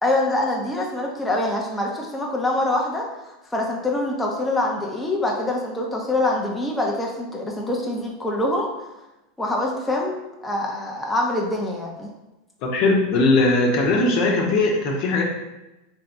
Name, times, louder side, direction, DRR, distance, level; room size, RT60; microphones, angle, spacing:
voice 1, 0.0-3.1 3.5-8.7 9.4-10.2 10.4-12.1, left 2 dB, 10° left, -2 dB, 0.9 m, -24 dB
voice 2, 12.6-15.2, left 2 dB, 55° left, 0 dB, 1.0 m, -19 dB
3.7 x 3.3 x 3.9 m, 0.99 s
hypercardioid pair, 95°, 0 cm